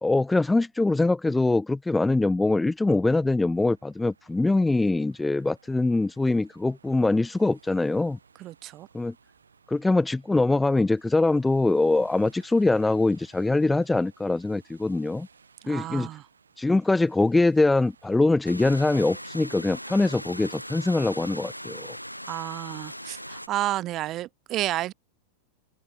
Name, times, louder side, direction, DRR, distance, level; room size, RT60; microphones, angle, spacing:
voice 1, 0.0-8.2 8.9-9.1 9.7-15.3 15.7-16.1 16.6-22.0, left 2 dB, 10° left, 0.4 m, -23 dB
sound 1, 3.0-19.7, right 5 dB, 75° right, 3.0 m, -59 dB
voice 2, 8.4-8.9 15.7-16.2 22.2-24.9, right 15 dB, 35° right, 1.1 m, -31 dB
sound 2, 18.4-23.5, equal, 90° left, 2.1 m, -39 dB
figure-of-eight pair, 90°, 0 cm